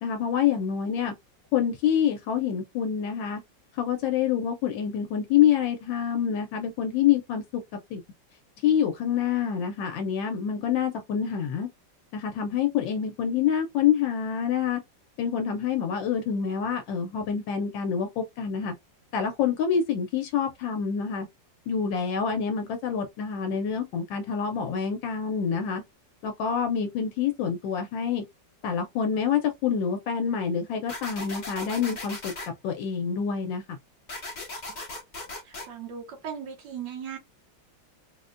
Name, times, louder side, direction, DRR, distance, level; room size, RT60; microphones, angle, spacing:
voice 1, 0.0-1.1 1.5-3.4 3.7-7.6 7.9-8.0 8.6-11.7 12.1-14.8 15.2-18.7 19.1-21.3 21.7-25.8 26.2-28.2 28.6-32.3 32.6-33.8, left 8 dB, 80° left, 1.3 m, -26 dB
sound 1, 30.9-32.5 34.1-35.7, left 2 dB, 35° left, 0.7 m, -37 dB
voice 2, 35.4-37.2, right 8 dB, 70° right, 1.4 m, -38 dB
4.0 x 2.1 x 2.5 m
omnidirectional pair, 2.0 m